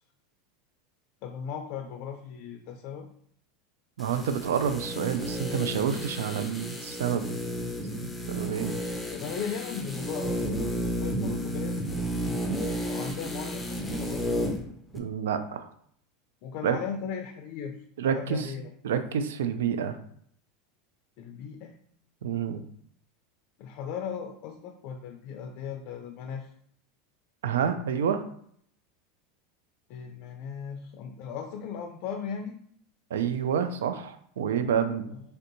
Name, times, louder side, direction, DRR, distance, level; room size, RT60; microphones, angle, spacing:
voice 1, 1.2-3.1 9.1-14.3 16.4-18.7 21.2-21.8 23.6-26.5 29.9-32.6 35.1-35.2, left 7 dB, 55° left, 5 dB, 0.4 m, -37 dB
sound 1, 4.0-14.7 14.9-15.0, equal, 5° left, 0.5 m, -32 dB
voice 2, 4.0-7.3 7.9-8.8 14.9-15.7 16.6-16.8 18.0-18.5 18.8-20.0 22.2-22.6 27.4-28.2 33.1-35.1, right 7 dB, 85° right, 9 dB, 0.3 m, -28 dB
3.4 x 2.6 x 2.6 m, 0.64 s
supercardioid pair, 115°, 0 cm